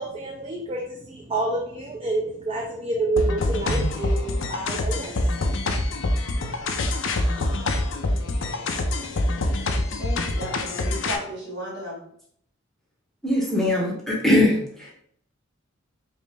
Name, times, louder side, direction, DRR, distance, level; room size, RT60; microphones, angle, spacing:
voice 1, 0.0-6.7, right 2 dB, 25° right, -1 dB, 0.5 m, -29 dB
sound 1, 3.2-11.2, left 2 dB, 65° left, 0.5 m, -25 dB
voice 2, 10.0-12.0, equal, 55° right, -4 dB, 1.6 m, -34 dB
voice 3, 13.2-14.9, left 1 dB, ahead, -4 dB, 0.8 m, -21 dB
5.1 x 2.1 x 3.4 m, 0.66 s
head